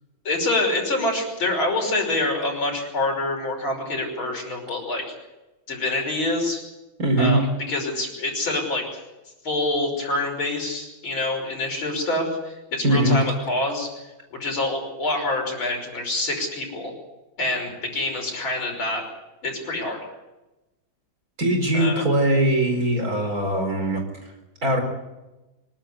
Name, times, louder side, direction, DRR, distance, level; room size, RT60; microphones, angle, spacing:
voice 1, 0.2-5.0 5.7-6.6 7.2-8.8 9.4-13.9 14.3-16.9 17.4-19.0 19.4-20.0 21.7-22.0, left 2 dB, 75° left, 1 dB, 6.5 m, -26 dB
voice 2, 7.0-7.4 12.8-13.2 21.4-24.0 24.6-24.8, right 1 dB, 45° right, 3 dB, 4.9 m, -21 dB
25.5 x 12.5 x 9.9 m, 1.0 s
omnidirectional pair, 2.2 m